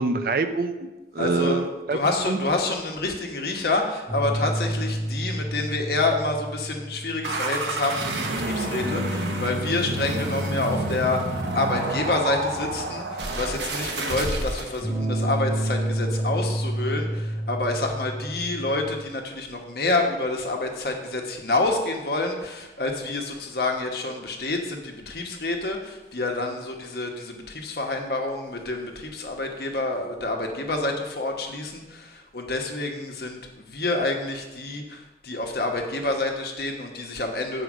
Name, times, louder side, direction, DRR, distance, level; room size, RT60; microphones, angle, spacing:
voice 1, 0.0-2.0 2.3-2.4, right 3 dB, 50° right, 8 dB, 0.5 m, -25 dB
voice 2, 1.2-1.6 1.9-37.6, left 2 dB, 60° left, 2 dB, 1.1 m, -28 dB
sound 1, 4.1-8.0 8.8-13.9 14.8-19.0, right 1 dB, 15° right, 1.2 m, -31 dB
sound 2, 7.2-14.8, right 2 dB, 80° right, 1.1 m, -29 dB
7.8 x 4.9 x 6.1 m, 1.1 s
head